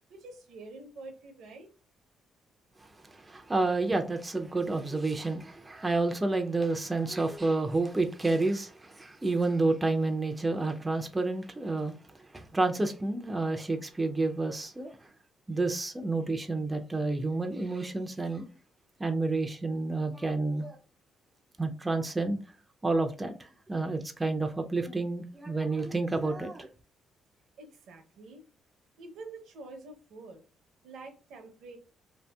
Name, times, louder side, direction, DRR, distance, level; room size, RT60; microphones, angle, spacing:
voice 1, 0.1-1.7 27.6-28.4 29.0-30.4 30.8-31.8, right 3 dB, 80° right, 0.6 m, -47 dB
voice 2, 2.8-15.0 15.5-18.5 19.0-20.8 21.6-22.4 22.8-26.7, right 3 dB, 15° right, 0.4 m, -30 dB
2.7 x 2.6 x 2.2 m
cardioid pair, 90°, 0 cm